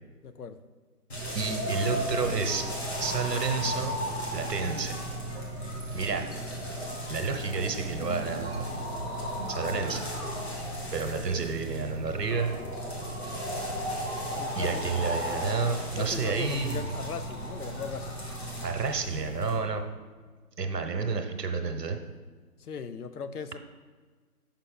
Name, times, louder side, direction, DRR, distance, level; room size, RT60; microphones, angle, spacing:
voice 1, 0.2-0.6 14.4-14.9 16.0-18.2 22.6-23.6, left 6 dB, 70° left, 12 dB, 0.6 m, -38 dB
sound 1, 1.1-19.6, equal, 40° left, 1.4 m, -35 dB
voice 2, 1.3-2.7 3.0-4.0 4.3-5.0 5.6-6.3 7.1-8.6 9.5-10.0 10.5-10.6 10.9-12.5 14.5-16.9 18.6-19.9 20.6-22.0, right 4 dB, 85° right, 5 dB, 1.1 m, -30 dB
sound 2, 2.0-12.4, right 2 dB, 40° right, 0.5 m, -44 dB
7.3 x 5.6 x 3.7 m, 1.4 s
figure-of-eight pair, 170°, 47 cm